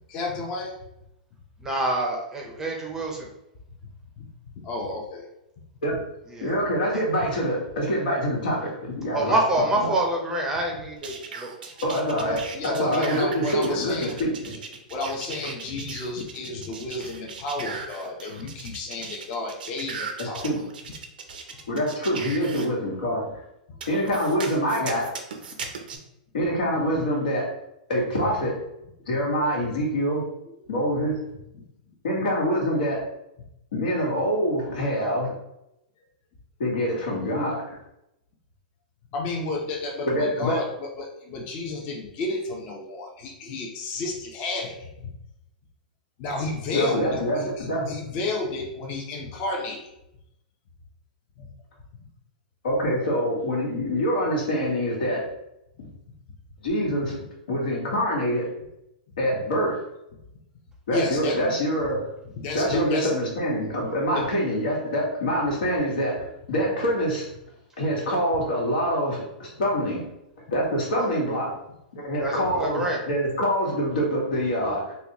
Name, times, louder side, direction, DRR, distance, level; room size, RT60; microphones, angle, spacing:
voice 1, 0.1-0.7 4.2-4.3 4.6-5.3 11.3-11.4 11.7-11.8 12.2-14.2 14.9-20.5 21.5-21.6 31.5-31.6 39.1-44.9 46.2-49.8 51.4-51.5 55.8-55.9 60.9-61.5 62.2-63.1 64.1-64.3 72.3-72.4, left 2 dB, 35° left, 0 dB, 0.7 m, -31 dB
voice 2, 1.7-3.1 6.3-6.5 9.1-11.5 72.2-73.0, right 1 dB, 10° right, 0 dB, 0.6 m, -26 dB
voice 3, 6.4-9.9 11.8-14.6 20.2-20.6 21.7-23.2 23.9-25.1 26.3-27.5 27.9-28.6 29.1-30.2 30.7-31.2 32.0-33.0 33.7-35.3 36.6-37.8 40.1-40.6 46.7-47.9 52.6-55.2 55.8-55.9 56.6-57.2 57.5-58.5 59.2-59.8 60.9-62.0 62.5-66.1 66.5-67.3 67.8-70.1 70.5-71.5 71.9-75.0, equal, 85° left, -3 dB, 1.4 m, -25 dB
sound 1, 11.0-22.7 23.8-26.0, right 5 dB, 90° right, 0.6 m, -38 dB
4.0 x 2.3 x 2.9 m, 0.84 s
hypercardioid pair, 145°, 5 cm